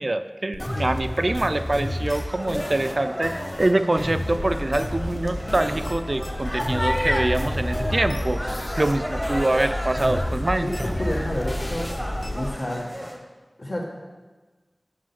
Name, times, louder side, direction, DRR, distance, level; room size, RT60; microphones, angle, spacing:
voice 1, 0.0-8.4 8.8-10.7, right 2 dB, 45° right, 10 dB, 0.3 m, -24 dB
sound 1, 0.5-6.0 6.2-9.0 9.2-12.3, left 1 dB, 25° left, 0.7 m, -31 dB
sound 2, 0.6-13.2, equal, 5° left, 0.9 m, -33 dB
sound 3, 4.4-12.5, left 1 dB, 45° left, 1.9 m, -33 dB
voice 2, 10.6-11.9 12.3-12.9 13.6-13.8, left 1 dB, 65° left, -3 dB, 1.5 m, -29 dB
5.6 x 5.0 x 5.8 m, 1.3 s
wide cardioid pair, 40°, 0 cm